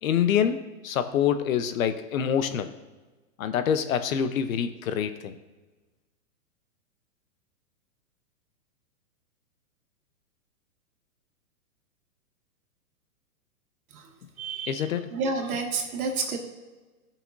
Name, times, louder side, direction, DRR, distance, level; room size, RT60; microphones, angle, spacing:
voice 1, 0.0-2.7 3.4-5.4 14.7-15.1, left 8 dB, 65° left, 10 dB, 0.9 m, -26 dB
voice 2, 14.4-14.8 15.1-16.4, right 4 dB, 75° right, 1 dB, 2.0 m, -29 dB
15.5 x 5.9 x 2.6 m, 1.2 s
hypercardioid pair, 140°, 43 cm